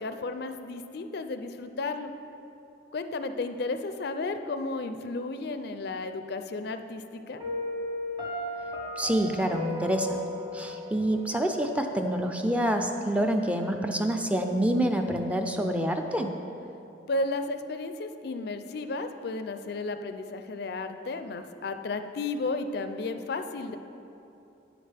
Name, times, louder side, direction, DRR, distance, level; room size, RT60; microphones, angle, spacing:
voice 1, 0.0-2.1 2.9-7.4 17.1-23.8, left 3 dB, 60° left, 9 dB, 0.4 m, -33 dB
Piano, 7.4-12.3, left 1 dB, 20° right, 1.1 m, -36 dB
voice 2, 9.0-10.2 10.5-16.4, right 1 dB, 5° right, 4 dB, 0.4 m, -27 dB
9.9 x 9.2 x 3.4 m, 2.8 s
head